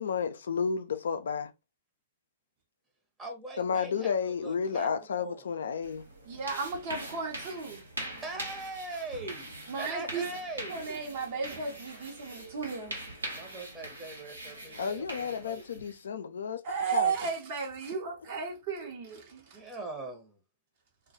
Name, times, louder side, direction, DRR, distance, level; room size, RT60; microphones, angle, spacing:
voice 1, 0.0-1.5 3.6-6.0 14.8-16.6 16.9-17.1, left 6 dB, 65° left, 0.4 m, -31 dB
voice 2, 3.2-5.5 8.2-10.8 13.3-15.7 19.5-20.4, right 2 dB, 15° right, 0.8 m, -41 dB
sound 1, 5.8-16.0, right 1 dB, 80° right, 0.9 m, -43 dB
voice 3, 6.3-7.8 9.7-10.2 10.7-13.1 16.6-19.6, right 5 dB, 50° right, 0.7 m, -34 dB
2.2 x 2.1 x 2.6 m
figure-of-eight pair, 110°, 0 cm